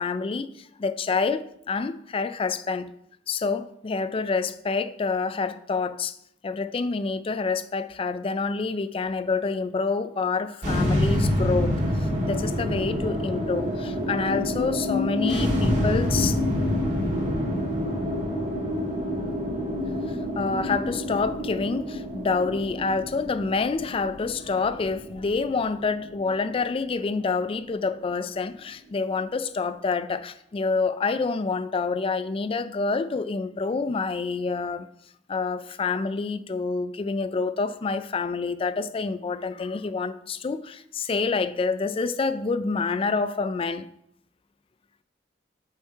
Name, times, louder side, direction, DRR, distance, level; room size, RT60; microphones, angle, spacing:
voice 1, 0.0-2.9 3.3-6.2 6.4-16.4 20.1-34.9 35.3-43.9, left 4 dB, 30° left, 0.3 m, -27 dB
sound 1, 10.6-27.0, left 1 dB, 40° right, 1.7 m, -27 dB
7.0 x 4.6 x 4.5 m
head